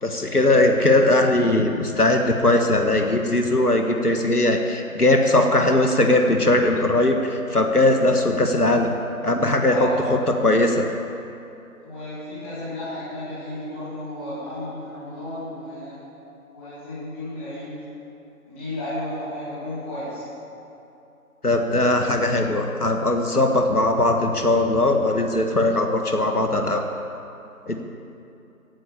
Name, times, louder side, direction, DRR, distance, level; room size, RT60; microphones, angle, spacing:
voice 1, 0.0-8.9 9.2-10.9 21.4-26.9 27.7-27.8, left 2 dB, 90° left, 4 dB, 1.8 m, -20 dB
voice 2, 9.7-10.0 11.8-16.0 16.5-17.7 18.5-20.2, left 1 dB, 10° left, -15 dB, 4.4 m, -33 dB
16.0 x 9.3 x 8.6 m, 2.8 s
figure-of-eight pair, 165°, 44 cm